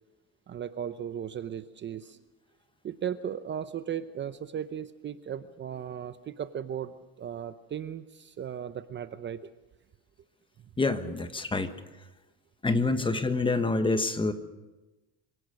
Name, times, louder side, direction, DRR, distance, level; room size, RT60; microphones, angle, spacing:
voice 1, 0.5-2.2 2.8-9.4 12.9-13.1, right 9 dB, 30° right, 11 dB, 0.8 m, -36 dB
voice 2, 10.8-11.7 12.6-14.3, left 3 dB, 15° left, 10 dB, 1.3 m, -27 dB
26.0 x 17.5 x 6.4 m, 1.1 s
cardioid pair, 125°, 36 cm